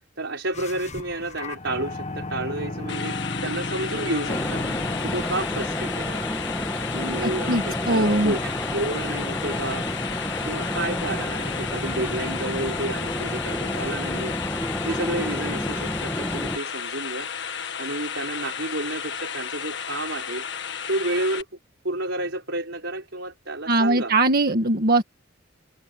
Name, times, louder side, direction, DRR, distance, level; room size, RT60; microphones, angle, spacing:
voice 1, 0.2-4.7 5.0-6.2 6.9-9.9 10.5-14.3 14.8-17.3 17.8-20.4 20.9-21.5 21.8-24.1, right 2 dB, 70° right, 6.2 m, -30 dB
sound 1, 0.5-5.5, left 2 dB, 35° left, 1.3 m, -33 dB
sound 2, 2.9-21.4, left 7 dB, 65° left, 1.7 m, -33 dB
sound 3, 4.3-16.6, left 1 dB, 10° left, 1.6 m, -30 dB
voice 2, 7.2-8.3 23.7-25.0, right 2 dB, 55° right, 1.7 m, -21 dB
head